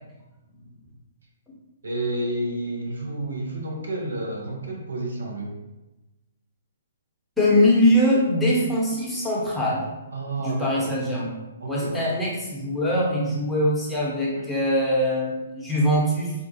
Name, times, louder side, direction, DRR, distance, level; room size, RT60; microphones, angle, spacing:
voice 1, 1.8-5.5 10.1-11.0 11.6-12.1, right 1 dB, 75° right, -1 dB, 0.8 m, -30 dB
voice 2, 7.4-9.8 10.4-11.3 11.7-16.3, left 1 dB, 5° left, -7 dB, 0.9 m, -22 dB
3.7 x 2.3 x 2.8 m, 1.0 s
figure-of-eight pair, 125°, 0 cm